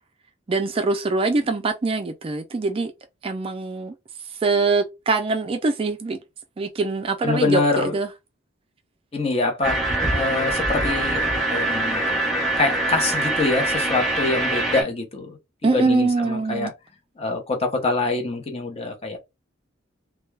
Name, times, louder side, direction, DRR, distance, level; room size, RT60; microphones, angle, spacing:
voice 1, 0.5-2.9 3.2-3.9 4.4-6.2 6.6-8.1 15.6-16.7, right 3 dB, 30° right, 0.3 m, -23 dB
voice 2, 7.2-8.0 9.1-9.8 10.1-12.2 12.6-15.4 15.7-16.7 17.2-19.2, left 3 dB, 30° left, 0.7 m, -25 dB
sound 1, 9.6-14.8, right 2 dB, ahead, 0.9 m, -23 dB
2.2 x 2.2 x 3.2 m
head